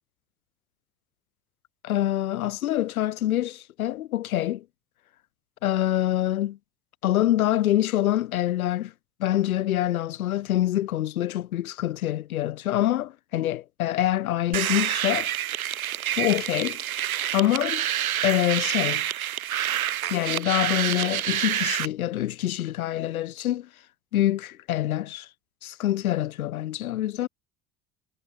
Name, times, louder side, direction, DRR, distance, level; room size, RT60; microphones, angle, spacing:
voice 1, 1.8-4.6 5.6-6.6 7.0-8.9 9.2-15.3 16.2-16.8 17.3-17.9 18.2-19.0 20.1-23.7 24.1-25.3 25.6-27.3, left 13 dB, 85° left, 0.6 m, -25 dB
sound 1, 14.5-21.9, right 11 dB, 85° right, 1.3 m, -28 dB
figure-of-eight pair, 65°, 42 cm